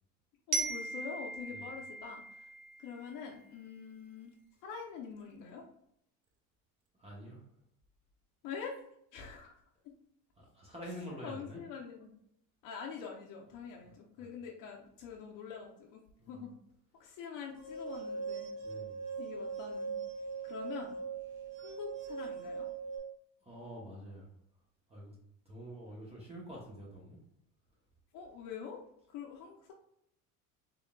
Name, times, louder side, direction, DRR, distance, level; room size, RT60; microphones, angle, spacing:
voice 1, 0.5-2.5 2.8-4.3 4.6-5.7 8.4-8.8 9.1-9.6 11.2-12.1 12.6-16.0 16.3-16.5 16.9-18.5 19.2-20.0 20.4-21.0 21.6-22.7 28.1-28.8 29.1-29.7, left 6 dB, 65° left, 0 dB, 0.6 m, -45 dB
Glockenspiel, 0.5-3.4, right 4 dB, 85° right, 0.7 m, -39 dB
voice 2, 6.9-7.5 10.4-11.6 13.8-14.3 16.2-16.5 18.6-19.0 23.4-24.3 24.9-25.2 25.4-27.2, equal, 15° right, -3 dB, 0.8 m, -47 dB
sound 1, 17.6-23.0, right 4 dB, 55° right, 1.0 m, -40 dB
3.6 x 3.6 x 2.2 m, 0.75 s
cardioid pair, 170°, 35 cm